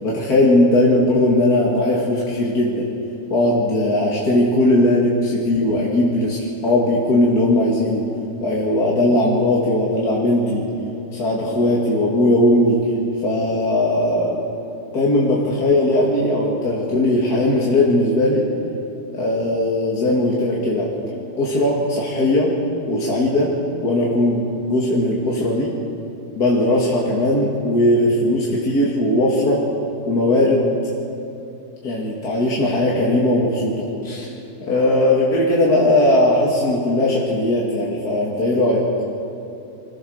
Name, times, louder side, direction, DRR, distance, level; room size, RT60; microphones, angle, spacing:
voice 1, 0.0-2.9 3.3-8.1 8.4-10.7 11.1-12.9 13.2-14.4 14.9-18.5 19.1-20.9 21.4-22.6 22.9-25.8 26.3-29.7 30.1-30.7 31.8-34.3 34.6-38.9, left 1 dB, 60° left, -4 dB, 2.7 m, -18 dB
25.0 x 16.0 x 6.5 m, 2.7 s
omnidirectional pair, 1.9 m